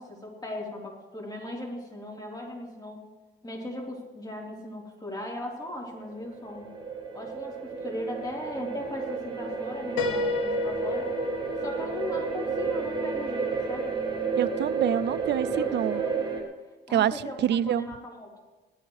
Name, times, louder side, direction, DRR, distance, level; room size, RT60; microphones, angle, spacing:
voice 1, 0.0-3.0 3.4-6.7 7.1-11.1 11.6-14.0 15.5-16.3 16.9-18.4, left 1 dB, 20° left, -2 dB, 3.7 m, -38 dB
sound 1, 5.7-16.4, right 4 dB, 25° right, 3.1 m, -31 dB
Piano, 10.0-13.7, left 3 dB, 90° left, 1.3 m, -32 dB
voice 2, 14.4-16.0 16.9-17.1 17.4-17.9, right 10 dB, 60° right, 17 dB, 0.5 m, -26 dB
19.0 x 13.5 x 3.2 m, 1.2 s
cardioid pair, 90°, 20 cm